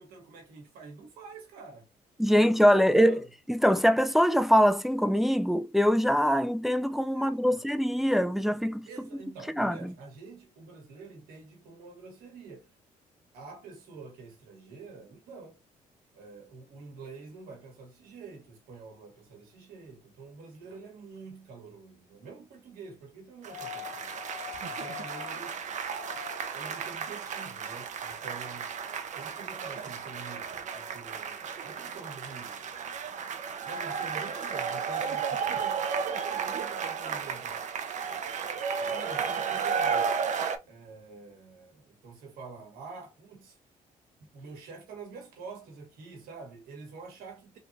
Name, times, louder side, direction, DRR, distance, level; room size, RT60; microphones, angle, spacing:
voice 1, 0.0-1.9 2.3-3.2 7.1-7.6 8.8-12.7 13.3-15.6 16.1-24.1 24.7-25.6 26.5-28.7 29.1-32.6 33.6-37.6 38.8-40.2 40.7-43.6 44.2-47.6, right 4 dB, 85° right, 1.5 m, -47 dB
voice 2, 2.2-3.2 3.5-8.9 9.6-9.9, equal, ahead, 0.3 m, -23 dB
sound 1, 23.4-26.7 28.1-28.2, left 18 dB, 85° left, 0.4 m, -44 dB
sound 2, 23.4-40.6, right 6 dB, 55° right, 0.7 m, -33 dB
3.6 x 2.8 x 2.6 m
cardioid pair, 80°, 15 cm